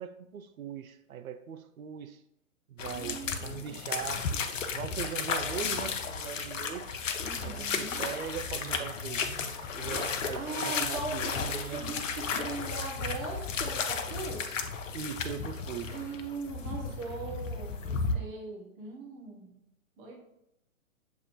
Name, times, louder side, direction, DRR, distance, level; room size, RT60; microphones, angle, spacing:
voice 1, 0.0-2.2 2.7-4.4 4.7-6.9 7.4-11.9 14.9-16.0, right 8 dB, 80° right, 0.5 m, -40 dB
sound 1, 2.8-18.2, left 5 dB, 65° left, 0.6 m, -34 dB
voice 2, 2.8-3.8 7.2-8.0 10.3-14.6 15.9-19.6 20.0-20.2, right 3 dB, 20° right, 0.6 m, -40 dB
7.1 x 2.4 x 2.9 m
figure-of-eight pair, 125°, 42 cm